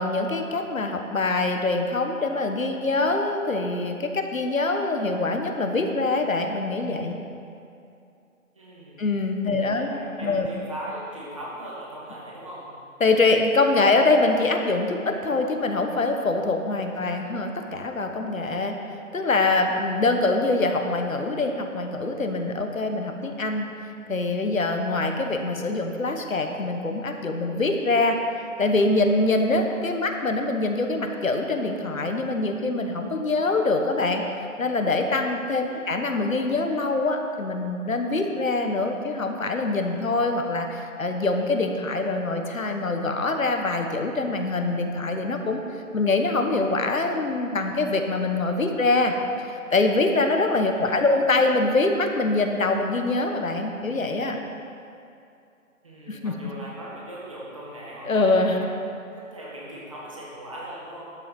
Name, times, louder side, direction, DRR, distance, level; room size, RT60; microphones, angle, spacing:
voice 1, 0.0-7.2 9.0-10.5 13.0-18.7 19.1-23.7 24.1-28.2 28.6-34.2 34.6-45.6 45.9-49.1 49.4-54.4 56.1-56.4 58.1-58.6, left 3 dB, 70° left, 4 dB, 1.3 m, -24 dB
voice 2, 8.5-9.1 9.6-12.7 16.8-17.1 35.7-35.9 50.7-51.0 55.8-58.7 59.0-61.1, right 1 dB, 25° right, -5 dB, 1.8 m, -39 dB
12.0 x 7.9 x 6.0 m, 2.5 s
figure-of-eight pair, 170°, 42 cm